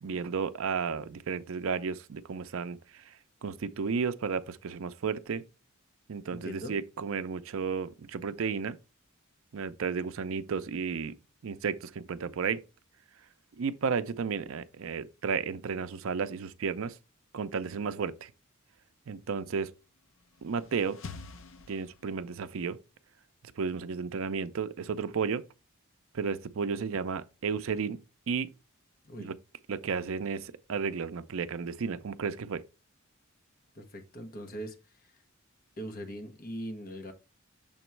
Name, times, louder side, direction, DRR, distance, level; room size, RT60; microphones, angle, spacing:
voice 1, 0.0-2.8 3.4-5.4 6.1-8.8 9.5-11.1 11.4-12.6 13.6-16.9 17.3-18.3 19.1-19.7 20.4-21.0 21.7-22.8 23.6-25.4 26.1-28.0 28.3-28.5 29.2-29.4 29.7-32.6, right 5 dB, 70° right, 0.5 m, -33 dB
voice 2, 6.3-6.7 29.0-29.3 33.7-34.8 35.0-35.1 35.8-37.1, equal, 45° left, 1.0 m, -40 dB
sound 1, 20.1-22.5, left 4 dB, 65° left, 0.6 m, -47 dB
7.1 x 3.0 x 4.5 m
head